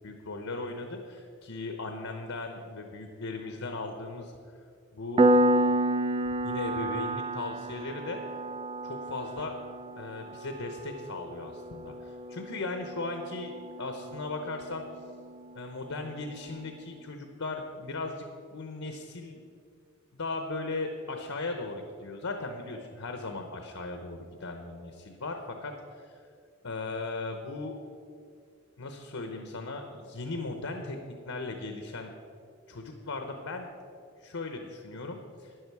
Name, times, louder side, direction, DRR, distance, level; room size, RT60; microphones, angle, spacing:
voice 1, 0.0-4.6 4.9-5.2 6.3-8.2 8.8-9.5 10.0-13.5 13.8-14.8 15.5-19.4 20.1-26.2 26.6-27.7 28.8-32.1 32.7-33.7 34.2-35.5, left 3 dB, 80° left, 5 dB, 1.0 m, -37 dB
Piano, 5.2-15.6, right 1 dB, 25° right, 0.4 m, -30 dB
12.5 x 9.8 x 4.8 m, 2.3 s
head